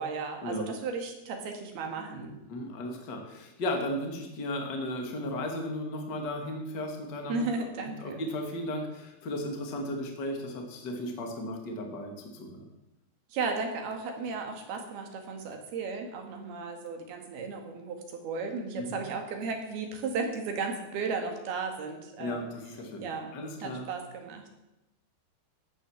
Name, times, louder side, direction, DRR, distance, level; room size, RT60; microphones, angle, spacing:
voice 1, 0.0-2.4 7.3-8.2 13.3-22.5 23.0-23.3 23.6-24.6, right 4 dB, 70° right, 4 dB, 3.8 m, -35 dB
voice 2, 2.5-7.4 8.0-12.7 18.7-19.0 22.2-23.9, left 1 dB, 30° left, 2 dB, 2.2 m, -35 dB
15.0 x 9.8 x 7.4 m, 0.96 s
omnidirectional pair, 4.8 m